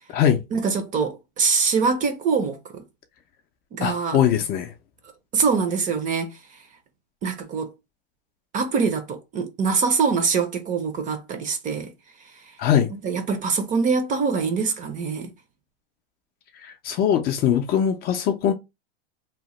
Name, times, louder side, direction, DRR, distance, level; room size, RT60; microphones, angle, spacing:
voice 1, 0.5-2.8 3.7-4.2 5.3-6.4 7.2-7.7 8.5-11.9 13.0-15.3, right 5 dB, 25° right, 0.5 m, -24 dB
voice 2, 3.8-4.7 12.6-12.9 16.6-18.5, left 9 dB, 35° left, 0.4 m, -21 dB
2.9 x 2.1 x 3.0 m
supercardioid pair, 130°, 29 cm